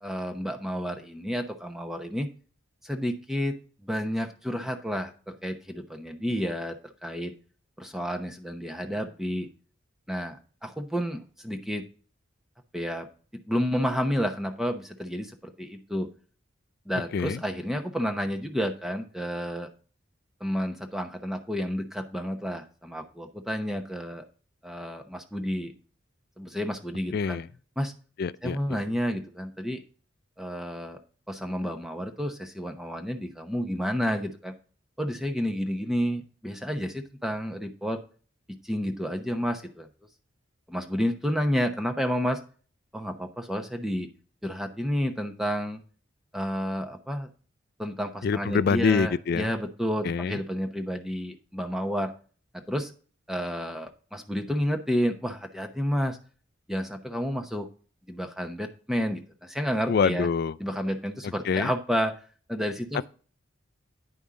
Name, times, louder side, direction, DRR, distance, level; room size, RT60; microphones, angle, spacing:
voice 1, 0.0-2.3 2.8-7.3 7.8-9.5 10.1-11.9 12.7-13.1 13.5-16.1 16.9-19.7 20.4-24.2 24.6-25.7 26.4-27.4 27.8-27.9 28.4-29.8 30.4-31.0 31.3-34.5 35.0-38.0 38.5-39.9 40.7-42.4 42.9-44.1 44.4-45.8 46.3-47.3 47.8-52.1 52.5-52.9 53.3-56.2 56.7-57.7 58.1-60.3 60.6-62.1 62.5-63.1, equal, ahead, 0.9 m, -30 dB
voice 2, 16.9-17.4 27.1-27.5 28.2-28.8 48.2-49.5 50.0-50.4 59.9-60.6 61.2-61.7, left 5 dB, 50° left, 0.3 m, -26 dB
9.7 x 5.5 x 3.7 m
head